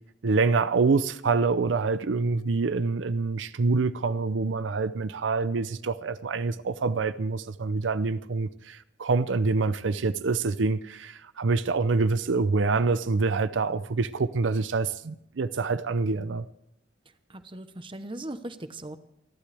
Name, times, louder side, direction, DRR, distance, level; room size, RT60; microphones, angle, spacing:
voice 1, 0.2-16.5, right 4 dB, 90° right, 0.6 m, -26 dB
voice 2, 17.3-19.0, right 1 dB, 25° right, 1.0 m, -38 dB
28.5 x 11.5 x 3.4 m
head